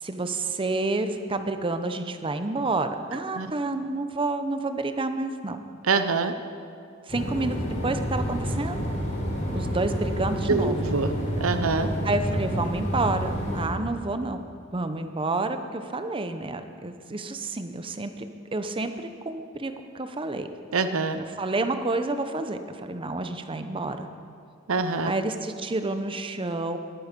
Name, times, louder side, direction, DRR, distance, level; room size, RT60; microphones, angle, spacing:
voice 1, 0.0-5.6 7.1-7.6 7.8-8.8 9.5-10.7 12.0-14.4 14.7-18.3 18.5-18.9 19.2-20.5 21.2-24.1 25.0-26.8, right 2 dB, 25° right, 8 dB, 0.7 m, -29 dB
voice 2, 5.8-6.3 10.5-11.1 11.4-11.9 20.7-21.2 24.7-25.1, right 4 dB, 70° right, 9 dB, 0.7 m, -25 dB
sound 1, 7.1-13.7, equal, 35° left, 3.6 m, -29 dB
20.5 x 9.4 x 5.3 m, 2.4 s
head